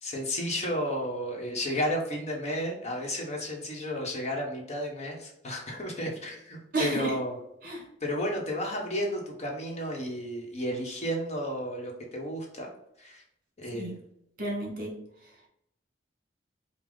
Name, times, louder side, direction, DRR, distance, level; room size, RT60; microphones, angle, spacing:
voice 1, 0.0-7.4 8.0-12.7 13.0-13.2 13.6-13.9, equal, 40° left, 0 dB, 1.1 m, -32 dB
voice 2, 6.7-7.1 7.6-7.8 13.7-13.9 14.4-14.9, right 2 dB, 55° right, -1 dB, 1.6 m, -31 dB
5.1 x 2.3 x 3.8 m, 0.78 s
head